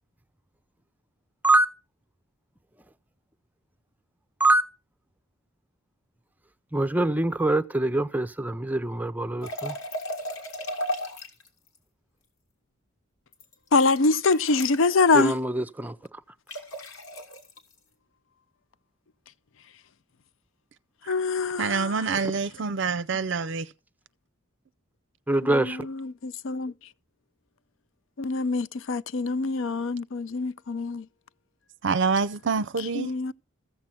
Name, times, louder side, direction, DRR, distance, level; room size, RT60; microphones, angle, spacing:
voice 1, 6.7-9.7 15.1-15.9 25.3-25.8, right 2 dB, 10° right, 0.6 m, -24 dB
sound 1, 9.4-11.5 13.3-14.9 16.5-17.6, equal, 85° left, 2.9 m, -35 dB
voice 2, 13.7-15.4 21.1-21.9 25.4-26.7 28.2-31.1 32.9-33.3, left 3 dB, 65° left, 0.5 m, -25 dB
voice 3, 21.6-23.7 31.8-33.1, right 5 dB, 55° right, 0.5 m, -26 dB
14.5 x 7.6 x 5.7 m
head